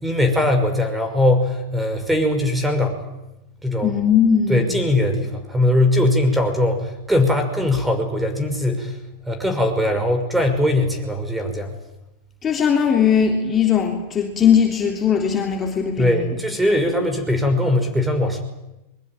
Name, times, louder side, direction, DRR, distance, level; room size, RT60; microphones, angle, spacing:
voice 1, 0.0-3.0 3.6-3.9 4.5-8.9 9.3-11.7 16.0-18.4, left 1 dB, 5° right, 8 dB, 5.9 m, -20 dB
voice 2, 3.8-4.6 12.4-16.4, left 7 dB, 25° left, 2 dB, 3.5 m, -19 dB
22.5 x 22.5 x 9.3 m, 0.95 s
hypercardioid pair, 125°, 0 cm